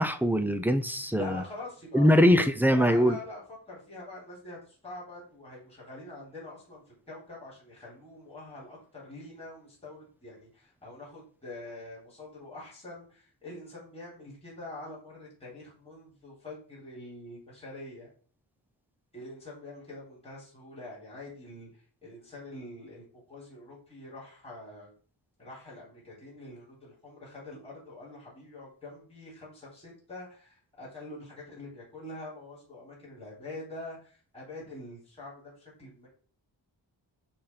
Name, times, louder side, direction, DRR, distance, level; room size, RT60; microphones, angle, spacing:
voice 1, 0.0-1.4 1.9-3.2, equal, 5° right, 0.5 m, -22 dB
voice 2, 1.2-2.2 2.6-3.4 3.7-18.1 19.1-24.9 25.4-36.1, left 2 dB, 15° left, 3.6 m, -45 dB
9.9 x 3.5 x 4.5 m
wide cardioid pair, 170°, 47 cm